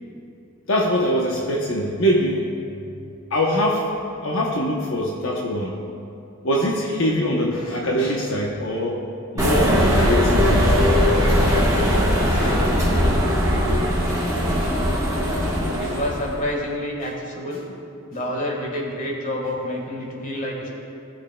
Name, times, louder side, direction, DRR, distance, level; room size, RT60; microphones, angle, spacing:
voice 1, 0.7-2.5 3.3-3.9 4.2-5.8 6.4-9.0 9.3-10.8 11.8-12.0 12.3-13.4 14.6-14.7, equal, 70° left, -2 dB, 0.8 m, -23 dB
sound 1, 9.4-16.3, equal, 15° right, 1.1 m, -19 dB
voice 2, 15.8-17.6 18.1-20.7, left 1 dB, 35° left, -1 dB, 1.4 m, -28 dB
17.5 x 6.5 x 2.2 m, 2.6 s
head